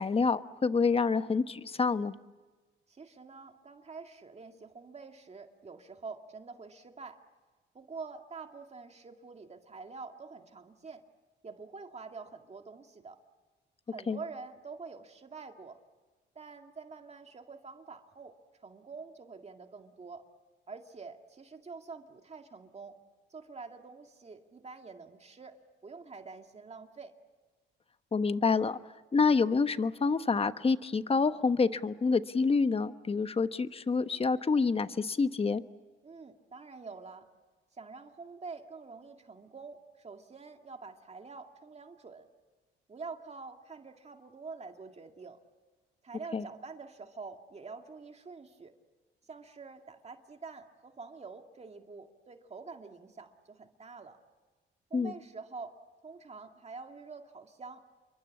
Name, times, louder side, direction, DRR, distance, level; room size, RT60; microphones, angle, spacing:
voice 1, 0.0-2.1 14.1-14.2 28.1-28.8 29.1-35.6 46.3-46.4 54.9-55.1, left 4 dB, 30° left, 12 dB, 1.1 m, -27 dB
voice 2, 2.9-7.2 7.7-11.0 11.4-13.2 13.9-15.8 16.4-18.4 18.6-20.2 20.7-23.0 23.3-25.6 25.8-27.1 36.0-37.3 37.7-42.3 42.9-45.4 46.0-48.7 49.3-54.2 54.9-55.8 56.0-57.9, right 4 dB, 35° right, 5 dB, 2.1 m, -46 dB
29.0 x 24.0 x 8.5 m, 1.3 s
cardioid pair, 90°, 20 cm